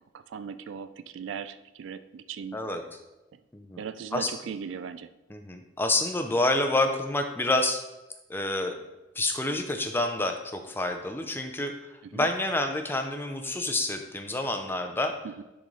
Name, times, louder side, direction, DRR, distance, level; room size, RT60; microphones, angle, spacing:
voice 1, 0.1-2.6 3.8-5.1 12.1-12.3 15.2-15.4, right 6 dB, 65° right, 12 dB, 0.3 m, -38 dB
voice 2, 2.5-3.0 3.5-3.8 4.1-4.3 5.3-7.8 8.3-8.8 9.2-15.1, left 2 dB, 10° left, 5 dB, 0.5 m, -28 dB
10.5 x 3.8 x 3.2 m, 1.0 s
head